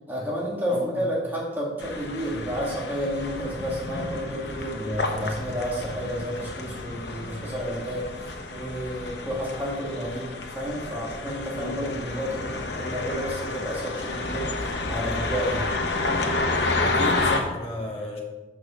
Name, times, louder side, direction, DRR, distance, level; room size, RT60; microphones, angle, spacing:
voice 1, 0.1-15.7, equal, 10° right, -5 dB, 1.6 m, -31 dB
voice 2, 0.7-1.0 11.5-11.9 16.8-18.2, left 1 dB, 30° left, -1 dB, 1.6 m, -33 dB
sound 1, 1.8-17.4, left 2 dB, 70° left, 0.9 m, -30 dB
6.1 x 4.8 x 6.6 m, 1.1 s
head